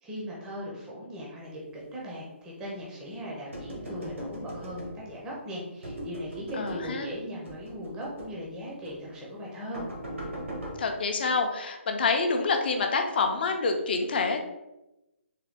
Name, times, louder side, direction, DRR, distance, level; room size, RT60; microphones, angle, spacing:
voice 1, 0.0-9.9, equal, 10° right, -4 dB, 0.5 m, -39 dB
sound 1, 3.5-5.2 5.8-7.0 7.4-8.4 8.8-9.0 9.7-10.8, right 1 dB, 85° right, 1.2 m, -39 dB
voice 2, 6.6-7.1 10.8-14.4, left 4 dB, 50° left, 4 dB, 0.5 m, -27 dB
3.7 x 2.2 x 3.4 m, 0.95 s
hypercardioid pair, 155°, 7 cm